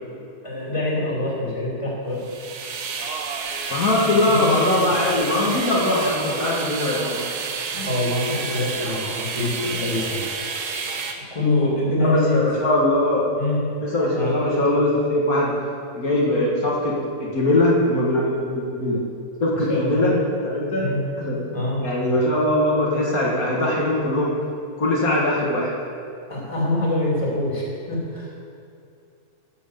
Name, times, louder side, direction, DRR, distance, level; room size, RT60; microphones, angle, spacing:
voice 1, 0.4-2.5 4.0-4.9 7.7-10.3 11.3-12.4 13.4-13.6 14.1-14.4 19.6-20.1 20.8-21.0 21.5-21.8 26.3-28.3, left 2 dB, 20° left, -5 dB, 2.4 m, -25 dB
sound 1, 2.2-11.1, right 5 dB, 80° right, 1.4 m, -30 dB
voice 2, 3.7-7.3 12.0-13.3 13.8-15.5 15.9-19.0 19.4-20.1 20.4-20.9 21.2-21.4 21.8-24.4 24.8-25.7, left 1 dB, 65° left, -4 dB, 2.1 m, -21 dB
12.5 x 6.1 x 6.7 m, 2.6 s
omnidirectional pair, 1.7 m